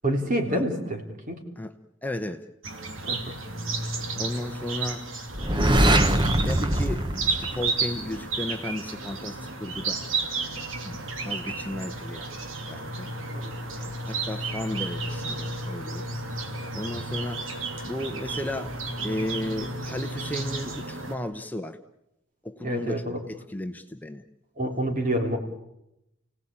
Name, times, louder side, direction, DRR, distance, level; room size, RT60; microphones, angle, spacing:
voice 1, 0.0-1.0 1.3-1.4 3.1-3.3 13.3-13.6 22.6-23.2 24.6-25.4, right 1 dB, 40° right, 3 dB, 3.5 m, -27 dB
voice 2, 2.0-2.4 4.1-5.1 5.5-10.0 10.8-12.3 12.7-13.1 13.7-16.1 16.7-17.4 17.8-21.8 22.4-24.2, left 1 dB, 10° left, 6 dB, 1.0 m, -34 dB
sound 1, 2.6-21.2, right 3 dB, 85° right, 3.0 m, -33 dB
sound 2, 5.3-8.2, right 1 dB, 25° right, 1.3 m, -23 dB
30.0 x 18.0 x 8.8 m, 0.88 s
head